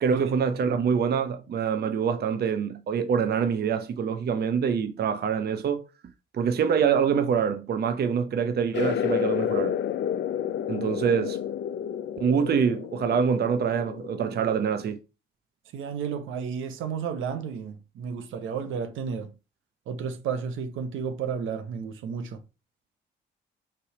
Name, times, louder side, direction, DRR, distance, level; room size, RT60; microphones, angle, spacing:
voice 1, 0.0-5.8 6.3-9.8 10.7-11.4 12.2-15.0, right 7 dB, 55° right, 0.8 m, -25 dB
sound 1, 8.7-14.9, left 10 dB, 65° left, 0.5 m, -30 dB
voice 2, 15.7-19.3 19.9-22.4, right 6 dB, 80° right, 1.0 m, -32 dB
5.7 x 3.4 x 4.9 m
cardioid pair, 90°, 20 cm